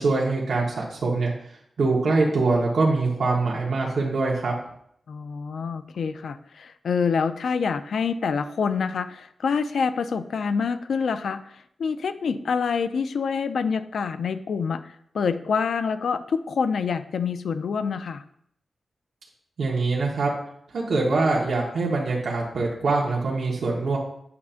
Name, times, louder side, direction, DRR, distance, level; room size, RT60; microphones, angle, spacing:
voice 1, 0.0-1.3 1.8-4.5 19.6-20.3 20.7-24.0, right 3 dB, 70° right, -4 dB, 1.2 m, -23 dB
voice 2, 5.1-18.2, left 5 dB, 80° left, 11 dB, 0.4 m, -26 dB
8.4 x 5.6 x 2.5 m, 0.70 s
wide cardioid pair, 160°, 0 cm